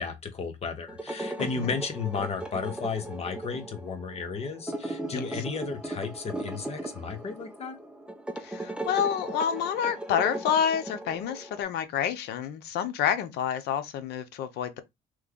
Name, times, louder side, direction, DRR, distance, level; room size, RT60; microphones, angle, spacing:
voice 1, 0.0-7.7, left 5 dB, 40° left, 1.0 m, -34 dB
sound 1, 0.9-11.6, right 1 dB, 5° right, 0.7 m, -37 dB
voice 2, 1.4-1.7 5.1-5.4 8.4-14.8, left 8 dB, 80° left, 0.7 m, -29 dB
3.2 x 2.3 x 3.6 m
cardioid pair, 110°, 17 cm